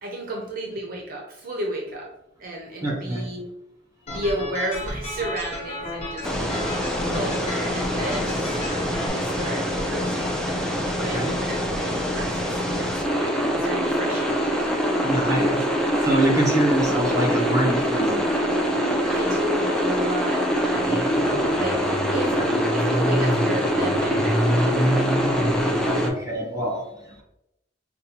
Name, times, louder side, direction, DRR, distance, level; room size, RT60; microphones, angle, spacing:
voice 1, 0.0-2.1 2.4-3.5 4.1-6.8 7.1-10.4 10.9-14.9 16.5-16.7 19.1-21.1 21.6-21.8 22.1-25.3, right 1 dB, 50° right, 0 dB, 0.6 m, -33 dB
voice 2, 2.8-3.3 11.0-11.3 15.0-18.8 25.7-27.2, right 1 dB, 20° right, -1 dB, 1.0 m, -26 dB
sound 1, 4.1-9.1, left 1 dB, 35° left, 0.8 m, -33 dB
sound 2, 6.2-26.1, equal, 5° left, 0.5 m, -23 dB
5.2 x 2.3 x 2.8 m, 0.83 s
head